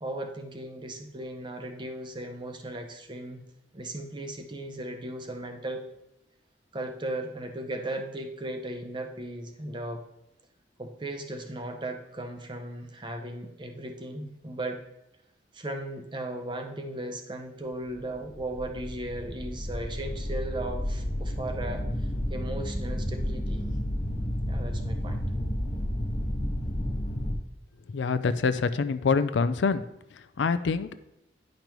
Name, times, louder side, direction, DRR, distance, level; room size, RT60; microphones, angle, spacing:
voice 1, 0.0-3.4 3.7-5.8 6.7-10.0 10.8-14.8 15.5-21.8 22.3-23.7 24.5-25.2, right 1 dB, 25° right, 5 dB, 0.8 m, -36 dB
sound 1, 18.1-27.3, equal, 40° left, 1.0 m, -31 dB
voice 2, 27.9-29.8 30.1-30.9, left 5 dB, 80° left, 12 dB, 0.4 m, -26 dB
10.5 x 5.3 x 3.0 m, 0.88 s
head